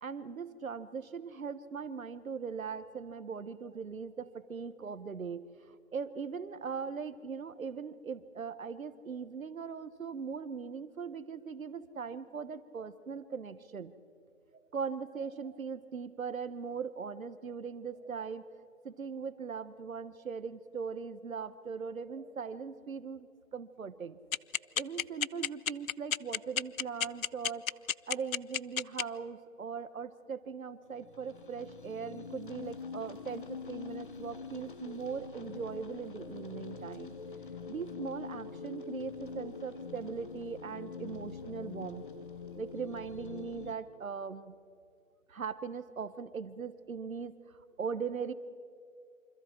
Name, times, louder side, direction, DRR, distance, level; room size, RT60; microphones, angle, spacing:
voice 1, 0.0-13.9 14.5-18.4 18.8-23.3 23.5-24.2 24.7-27.7 28.1-37.2 37.7-42.0 42.6-44.5 45.3-48.3, right 6 dB, 80° right, 13 dB, 1.2 m, -40 dB
sound 1, 24.3-29.0, left 9 dB, 80° left, 0.6 m, -30 dB
sound 2, 30.9-43.7, left 5 dB, 40° left, 1.0 m, -44 dB
28.5 x 25.0 x 4.5 m, 2.4 s
hypercardioid pair, 170°, 41 cm